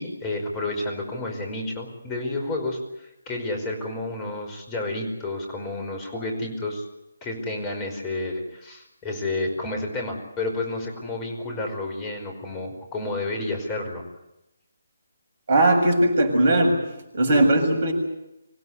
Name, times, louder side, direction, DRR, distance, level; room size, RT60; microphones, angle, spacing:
voice 1, 0.0-6.8 7.2-14.0, left 2 dB, 20° left, 3 dB, 5.2 m, -30 dB
voice 2, 15.5-16.8 17.1-17.9, right 1 dB, 45° right, 4 dB, 7.4 m, -19 dB
26.0 x 16.5 x 9.6 m, 0.87 s
figure-of-eight pair, 145°, 0 cm